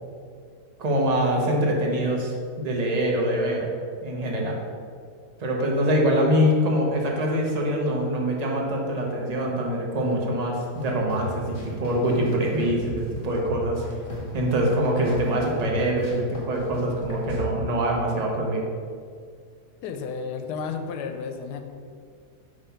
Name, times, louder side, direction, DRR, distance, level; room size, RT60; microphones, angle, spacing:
voice 1, 0.8-3.7 4.0-4.6 5.4-13.8 14.3-18.6, equal, 35° right, -1 dB, 0.7 m, -24 dB
sound 1, 10.8-17.4, left 1 dB, 25° left, 1.1 m, -37 dB
voice 2, 19.8-21.6, left 5 dB, 85° left, 6 dB, 1.1 m, -32 dB
5.5 x 3.2 x 5.6 m, 2.2 s
omnidirectional pair, 1.7 m